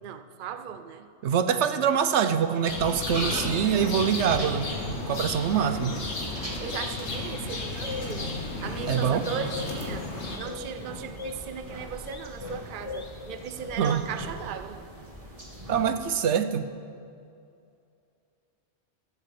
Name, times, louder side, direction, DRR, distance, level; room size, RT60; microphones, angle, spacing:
voice 1, 0.0-1.1 1.5-1.6 6.6-8.3 8.6-10.1 10.4-14.8, right 8 dB, 50° right, 10 dB, 0.7 m, -37 dB
voice 2, 1.2-6.0 8.9-9.2 13.8-14.0 15.7-16.7, right 8 dB, 80° right, 11 dB, 1.0 m, -25 dB
sound 1, 2.7-10.4, left 3 dB, 75° left, 1.8 m, -34 dB
sound 2, 2.8-16.0, right 1 dB, 30° right, 1.8 m, -41 dB
sound 3, 7.5-14.3, left 4 dB, 30° left, 0.6 m, -42 dB
14.5 x 7.3 x 8.4 m, 2.4 s
omnidirectional pair, 1.2 m